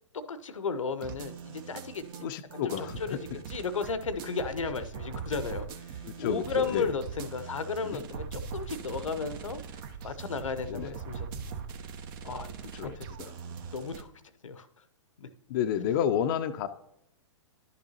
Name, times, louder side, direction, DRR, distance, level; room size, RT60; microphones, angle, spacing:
voice 1, 0.1-5.7 5.9-9.6 10.0-11.4 12.2-12.5 12.8-13.1 13.7-14.1 14.4-14.7 15.2-15.3, left 4 dB, 75° left, 12 dB, 0.7 m, -34 dB
sound 1, 1.0-14.0, right 6 dB, 40° right, 0.8 m, -41 dB
voice 2, 2.2-3.4 6.0-6.9 7.8-8.0 10.7-11.0 12.8-13.3 15.5-16.7, left 9 dB, 40° left, 7 dB, 0.5 m, -31 dB
11.0 x 6.9 x 2.8 m, 0.80 s
figure-of-eight pair, 115°, 16 cm